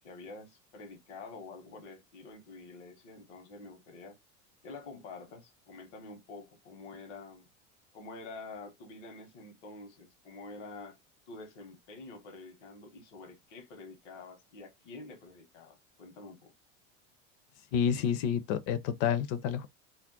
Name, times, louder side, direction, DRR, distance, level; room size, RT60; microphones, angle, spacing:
voice 1, 0.0-4.2 4.6-7.5 7.9-11.0 11.3-16.5, left 3 dB, 75° left, 1.0 m, -48 dB
voice 2, 17.7-19.7, left 8 dB, 55° left, 0.6 m, -29 dB
2.4 x 2.1 x 3.8 m
supercardioid pair, 110°, 36 cm